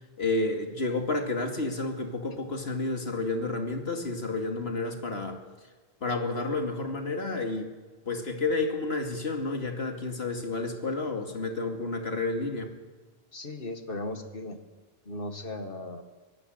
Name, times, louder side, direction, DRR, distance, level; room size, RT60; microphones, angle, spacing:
voice 1, 0.2-5.4 6.0-7.7 8.1-12.7, left 3 dB, 80° left, 4 dB, 2.6 m, -30 dB
voice 2, 13.3-14.6 15.1-16.0, left 2 dB, 60° left, 7 dB, 2.1 m, -37 dB
22.5 x 17.5 x 7.9 m, 1.3 s
omnidirectional pair, 1.0 m